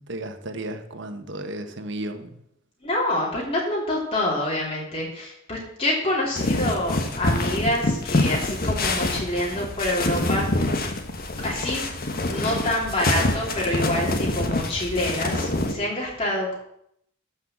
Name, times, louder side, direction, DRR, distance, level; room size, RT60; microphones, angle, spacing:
voice 1, 0.0-2.4, right 1 dB, 65° right, 7 dB, 1.3 m, -34 dB
voice 2, 2.8-10.6 11.4-11.8 12.3-16.6, left 1 dB, 30° left, -4 dB, 3.0 m, -26 dB
sound 1, 6.4-15.7, left 2 dB, 50° left, 1.4 m, -26 dB
13.0 x 5.6 x 7.3 m, 0.74 s
head